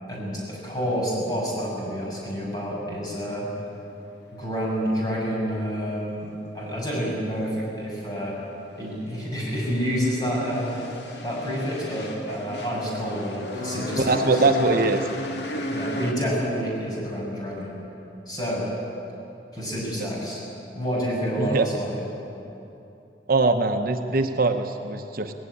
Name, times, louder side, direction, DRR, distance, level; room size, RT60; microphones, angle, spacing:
voice 1, 0.1-3.5 4.3-8.4 8.8-10.7 11.2-14.4 15.7-17.8 18.3-18.7 19.5-20.4 20.7-22.0, equal, 20° left, -4 dB, 6.6 m, -28 dB
sound 1, 8.6-16.1, left 1 dB, 70° left, 2.1 m, -33 dB
voice 2, 14.0-15.0 20.0-20.1 21.4-21.7 23.3-25.3, right 3 dB, 55° right, 6 dB, 0.9 m, -22 dB
19.0 x 16.5 x 9.8 m, 2.8 s
head